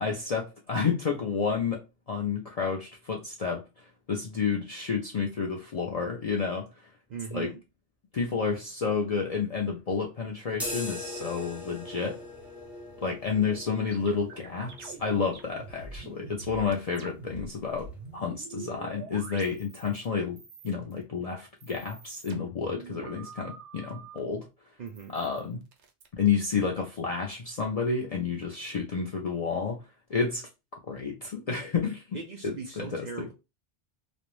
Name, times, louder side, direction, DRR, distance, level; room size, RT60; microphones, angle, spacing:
voice 1, 0.0-1.8 2.1-3.6 4.1-6.7 7.3-7.5 8.1-12.2 13.0-20.4 20.6-24.5 25.1-25.6 26.1-29.8 30.1-30.5 30.9-32.2 32.4-33.3, left 5 dB, 70° left, 0.3 m, -30 dB
voice 2, 7.1-7.6 24.8-25.1 32.1-33.3, right 6 dB, 60° right, 0.5 m, -39 dB
sound 1, 10.5-18.3, left 1 dB, ahead, 0.4 m, -42 dB
sound 2, 13.5-17.5 17.7-20.1 20.4-21.0 21.5-24.2 24.9-26.1, right 5 dB, 80° right, 0.9 m, -46 dB
2.5 x 2.0 x 3.0 m
omnidirectional pair, 1.2 m